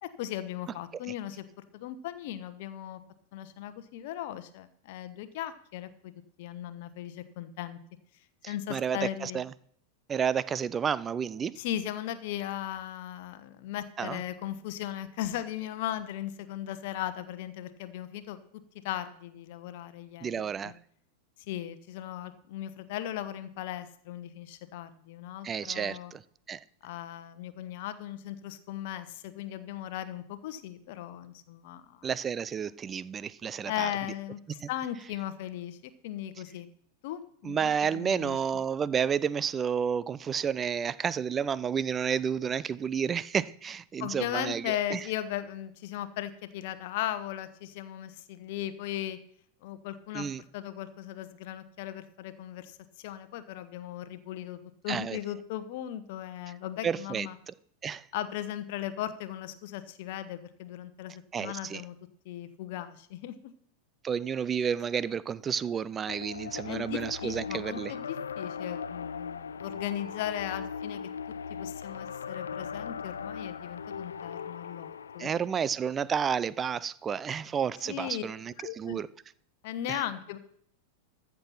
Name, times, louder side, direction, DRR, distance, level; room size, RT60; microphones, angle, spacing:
voice 1, 0.0-1.4 1.7-3.0 3.3-6.1 6.4-7.8 8.5-9.4 11.6-18.4 18.8-20.7 21.5-26.1 26.8-32.1 33.6-35.8 36.0-36.7 37.0-38.4 44.0-49.2 49.6-50.3 50.5-54.6 54.8-57.3 58.1-61.9 62.2-63.5 66.6-71.0 71.5-74.9 75.1-75.3 77.8-78.3 78.6-79.0 79.6-80.4, left 12 dB, 50° left, 1.0 m, -37 dB
voice 2, 8.4-9.5 10.1-11.6 14.0-14.2 20.2-20.7 25.4-26.2 26.5-26.6 32.0-34.1 34.6-34.7 37.4-45.0 50.1-50.4 54.9-55.2 56.8-57.5 57.8-58.0 61.3-61.8 64.0-67.9 75.2-79.1 79.9-80.0, right 7 dB, 20° right, 0.5 m, -31 dB
sound 1, 66.1-75.4, left 6 dB, 70° left, 0.5 m, -39 dB
14.0 x 6.8 x 5.9 m
figure-of-eight pair, 90°, 0 cm